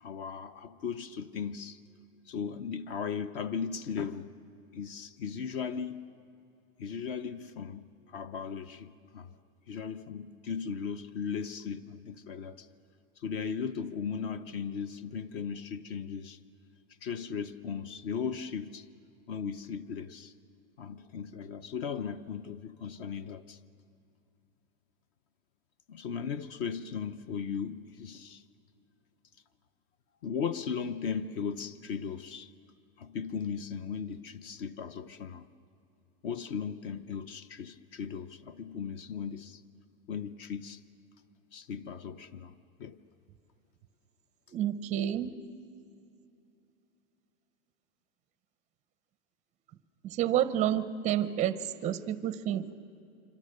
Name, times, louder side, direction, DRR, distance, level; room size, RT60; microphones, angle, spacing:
voice 1, 0.0-1.8 2.3-4.3 4.7-6.0 6.8-9.3 9.7-12.7 13.2-16.4 17.0-18.9 19.3-20.3 20.8-23.6 25.9-28.4 30.2-32.5 33.0-35.5 36.2-39.6 40.1-40.8 41.5-42.5 42.8-43.0, left 6 dB, 45° left, 0.8 m, -37 dB
voice 2, 44.5-45.3 50.0-52.7, right 11 dB, 20° right, 0.5 m, -29 dB
26.5 x 25.5 x 6.5 m
supercardioid pair, 160°, 40 cm